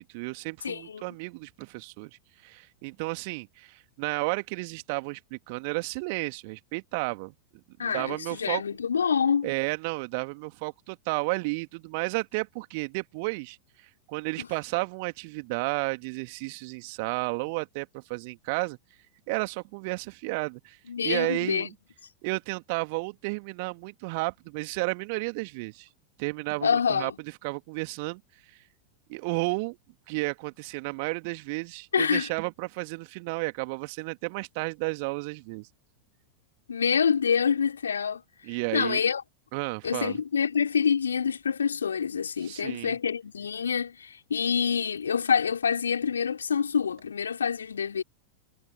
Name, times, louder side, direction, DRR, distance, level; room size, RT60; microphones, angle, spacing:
voice 1, 0.0-7.3 7.8-8.6 9.4-18.8 19.3-21.7 22.2-25.9 26.2-28.2 28.5-28.6 29.1-29.8 30.1-35.7 38.4-39.0 39.5-40.2 42.4-43.0, right 29 dB, 45° right, 2.3 m, -32 dB
voice 2, 0.6-1.0 7.8-9.5 14.4-14.5 20.9-21.7 26.6-27.2 31.9-32.3 36.7-38.2 38.7-39.2 39.8-48.0, left 7 dB, 70° left, 4.4 m, -26 dB
figure-of-eight pair, 90°, 0 cm